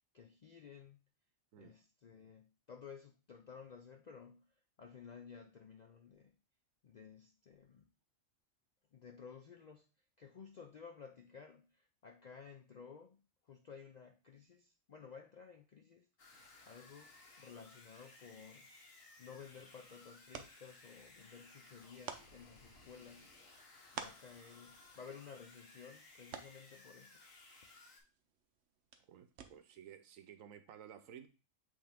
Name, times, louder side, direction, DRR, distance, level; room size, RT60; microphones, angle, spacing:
voice 1, 0.1-1.0 1.6-6.3 6.8-7.9 8.9-9.9 10.2-16.3 16.6-18.7 19.2-23.3 23.9-27.2, left 6 dB, 65° left, 5 dB, 0.4 m, -55 dB
sound 1, 16.2-28.0, left 2 dB, 85° left, 1.8 m, -60 dB
sound 2, 19.2-29.9, right 7 dB, 60° right, 0.9 m, -54 dB
voice 2, 29.1-31.3, right 9 dB, 80° right, 10 dB, 1.1 m, -55 dB
7.9 x 3.5 x 3.5 m, 0.33 s
omnidirectional pair, 1.3 m